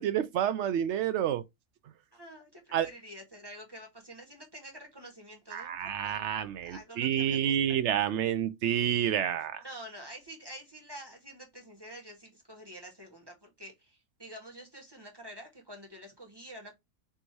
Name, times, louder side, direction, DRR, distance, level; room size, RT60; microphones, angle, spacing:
voice 1, 0.0-1.4 2.7-2.9 5.5-9.6, right 10 dB, 65° right, 0.7 m, -29 dB
voice 2, 2.1-6.2 6.6-7.6 9.6-16.7, right 1 dB, 15° right, 1.3 m, -48 dB
3.5 x 2.7 x 4.5 m
omnidirectional pair, 1.6 m